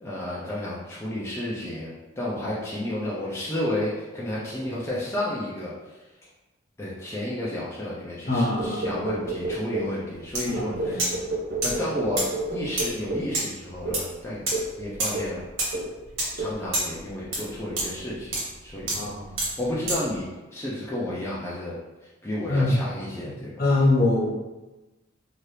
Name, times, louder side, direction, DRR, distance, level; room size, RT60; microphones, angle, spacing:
voice 1, 0.0-5.9 6.8-11.0 11.6-14.4 14.8-15.4 16.4-19.1 19.6-21.8 22.2-23.5, left 1 dB, 15° left, -8 dB, 0.4 m, -31 dB
voice 2, 8.3-9.0 10.4-11.1 18.8-19.3 22.5-22.9 23.3-24.3, left 2 dB, 50° left, -5 dB, 0.9 m, -24 dB
sound 1, 8.6-10.0 10.5-13.4 13.9-14.1 14.5-14.8 15.1-15.4 15.7-16.0 16.4-16.6, right 2 dB, 50° right, 0.4 m, -31 dB
sound 2, 10.3-10.4 10.7-11.2 11.6-20.1, right 1 dB, 85° right, 1.1 m, -28 dB
2.8 x 2.4 x 3.2 m, 1.1 s
head